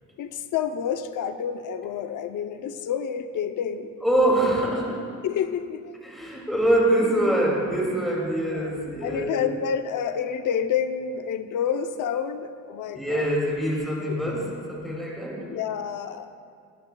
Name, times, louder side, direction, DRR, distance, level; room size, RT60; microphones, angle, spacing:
voice 1, 0.2-3.9 5.2-5.9 8.5-8.7 9.0-13.4 14.1-14.2 15.4-16.3, left 8 dB, 85° left, 9 dB, 0.6 m, -29 dB
voice 2, 4.0-5.1 6.0-9.4 12.9-15.5, right 1 dB, ahead, -4 dB, 2.3 m, -24 dB
20.0 x 12.0 x 2.3 m, 2.2 s
wide cardioid pair, 170°, 30 cm